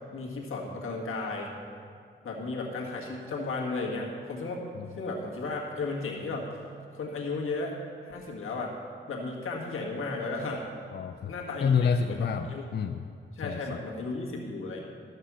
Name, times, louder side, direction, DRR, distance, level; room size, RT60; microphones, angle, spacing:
voice 1, 0.1-1.5 2.2-4.6 4.9-6.5 6.9-7.7 8.0-8.7 9.1-10.6 11.3-11.8 12.1-12.6 13.3-14.8, left 3 dB, 85° left, -2 dB, 1.8 m, -34 dB
voice 2, 10.9-11.3 11.6-13.0 13.4-13.8, left 6 dB, 55° left, 7 dB, 0.4 m, -28 dB
13.0 x 6.5 x 6.2 m, 2.3 s
cardioid pair, 80°, 21 cm